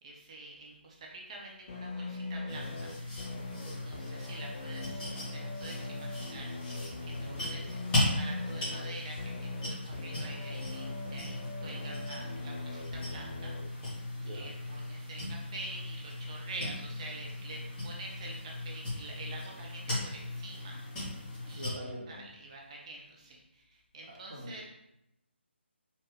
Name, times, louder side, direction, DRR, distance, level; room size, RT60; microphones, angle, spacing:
voice 1, 0.0-2.9 3.8-13.5 14.3-20.8 21.5-21.8 22.1-24.7, right 2 dB, 30° right, -1 dB, 0.9 m, -47 dB
sound 1, 1.7-13.7, left 3 dB, 30° left, 0.4 m, -42 dB
sound 2, 2.5-21.7, left 1 dB, 15° left, 1.5 m, -37 dB
voice 2, 3.5-3.9 7.1-7.4 14.2-14.5 21.5-22.2 24.1-24.5, equal, 55° right, -3 dB, 1.4 m, -44 dB
4.5 x 2.9 x 3.3 m, 0.83 s
figure-of-eight pair, 160°, 6 cm